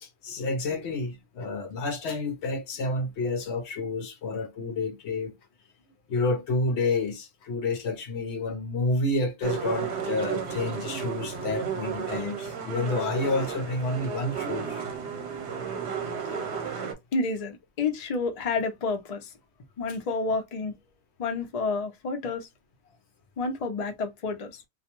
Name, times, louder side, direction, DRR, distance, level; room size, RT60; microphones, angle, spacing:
voice 1, 0.0-5.4 6.1-14.8, left 2 dB, 65° left, 0.8 m, -29 dB
sound 1, 9.4-16.9, right 6 dB, 60° right, 0.9 m, -33 dB
voice 2, 17.1-19.3 19.8-20.7 21.2-22.5 23.4-24.6, left 3 dB, 45° left, 0.5 m, -29 dB
2.4 x 2.2 x 2.9 m
omnidirectional pair, 1.3 m